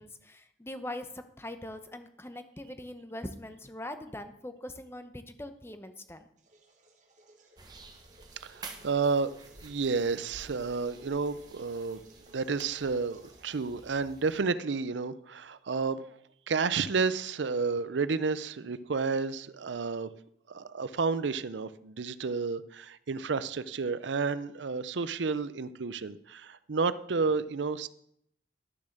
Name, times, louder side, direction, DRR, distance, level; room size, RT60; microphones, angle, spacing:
voice 1, 0.0-6.3, left 1 dB, 15° left, 9 dB, 0.8 m, -42 dB
sound 1, 6.4-14.9, right 2 dB, 45° right, 1.7 m, -59 dB
sound 2, 7.6-14.4, right 3 dB, 25° right, 1.2 m, -51 dB
voice 2, 8.4-9.3 9.6-12.0 12.3-16.1 16.5-20.1 20.5-27.9, right 4 dB, 90° right, 15 dB, 0.6 m, -31 dB
12.0 x 7.0 x 6.5 m, 0.73 s
head